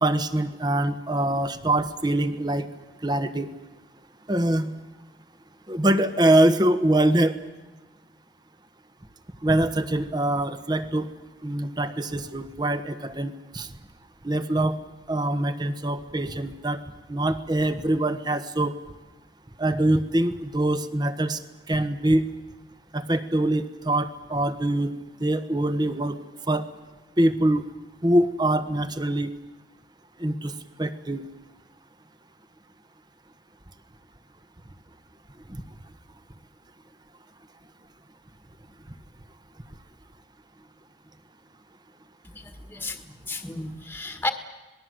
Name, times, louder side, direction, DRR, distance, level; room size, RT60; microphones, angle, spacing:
voice 1, 0.0-2.7 3.0-3.5 4.3-4.7 5.7-7.4 9.4-11.1 11.4-13.7 14.2-14.8 15.1-16.8 17.1-18.8 19.6-21.4 21.7-22.3 22.9-24.9 25.2-26.2 26.5-26.6 27.2-27.6 28.0-29.3 30.2-30.5 30.8-31.2 35.5-35.6, right 1 dB, 25° right, 11 dB, 1.3 m, -24 dB
voice 2, 42.2-43.0 43.3-44.3, left 2 dB, 10° left, 7 dB, 1.7 m, -32 dB
26.5 x 20.0 x 7.9 m, 1.2 s
head